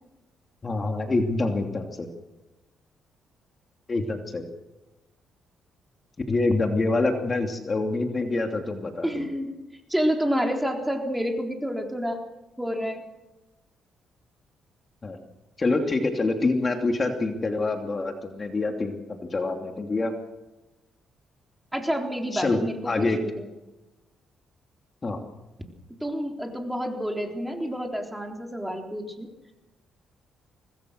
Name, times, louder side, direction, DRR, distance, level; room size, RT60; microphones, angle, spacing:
voice 1, 0.6-2.1 3.9-4.5 6.3-9.3 15.0-15.2 15.6-20.1 22.3-22.6 22.8-23.2 25.0-25.2, left 3 dB, 30° left, 4 dB, 2.9 m, -26 dB
voice 2, 9.0-9.5 9.9-12.2 12.6-13.0 21.7-23.5 26.0-29.3, equal, 5° right, 3 dB, 3.8 m, -29 dB
25.0 x 20.0 x 6.6 m, 1.0 s
cardioid pair, 90°, 0 cm